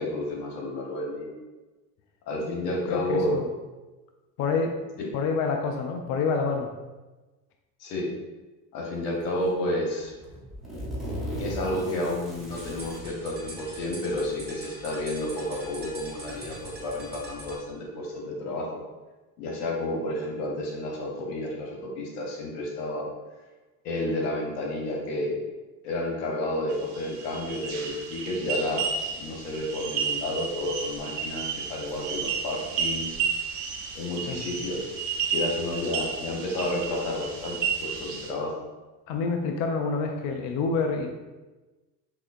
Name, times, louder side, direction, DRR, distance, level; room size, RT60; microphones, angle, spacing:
voice 1, 0.0-1.3 2.3-3.4 5.0-5.1 7.8-8.1 8.7-10.1 11.4-18.8 19.4-23.1 23.8-25.4 25.8-28.9 29.2-33.2 33.9-34.9 35.3-38.5, left 1 dB, 70° left, 0 dB, 1.1 m, -31 dB
voice 2, 2.9-3.5 4.4-4.8 5.1-6.7 34.2-34.5 39.1-41.1, left 4 dB, 40° left, 3 dB, 0.4 m, -27 dB
sound 1, 9.2-9.5 10.1-13.1 14.2-14.3 15.2-15.3 15.8-17.2, equal, ahead, 1.5 m, -38 dB
sound 2, 12.4-17.6, right 2 dB, 20° right, 1.2 m, -43 dB
sound 3, 26.7-38.3, right 6 dB, 35° right, 0.7 m, -32 dB
5.5 x 2.6 x 2.5 m, 1.2 s
hypercardioid pair, 80°, 50 cm